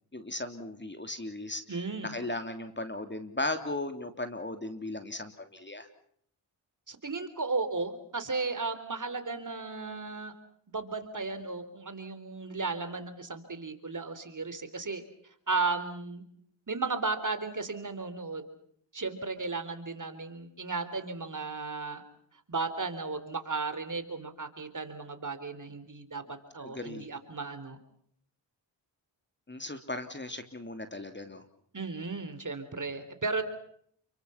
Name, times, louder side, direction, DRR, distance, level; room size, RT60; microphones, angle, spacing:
voice 1, 0.1-1.8 2.0-5.9 26.6-27.1 29.5-31.4, left 2 dB, 25° left, 8 dB, 3.0 m, -37 dB
voice 2, 1.7-2.1 6.9-10.3 10.7-15.0 15.5-16.2 16.7-18.4 18.9-22.0 22.5-27.8 31.7-33.4, right 3 dB, 40° right, 10 dB, 3.9 m, -35 dB
29.5 x 23.0 x 5.8 m, 0.65 s
cardioid pair, 55°, 47 cm